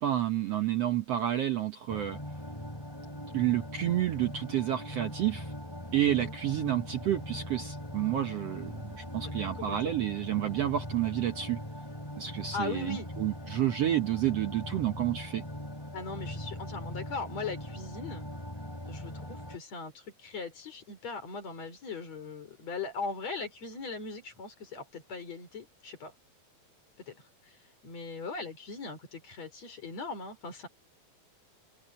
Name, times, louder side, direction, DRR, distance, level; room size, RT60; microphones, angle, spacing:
voice 1, 0.0-2.2 3.3-5.5 5.9-11.6 12.2-15.4, right 12 dB, 85° right, 1.4 m, -30 dB
sound 1, 1.9-19.6, left 1 dB, 10° left, 2.3 m, -41 dB
voice 2, 9.2-9.9 12.5-13.1 15.9-18.3 18.9-26.1 27.1-27.2 27.8-30.7, left 4 dB, 45° left, 5.8 m, -39 dB
open air
omnidirectional pair, 4.3 m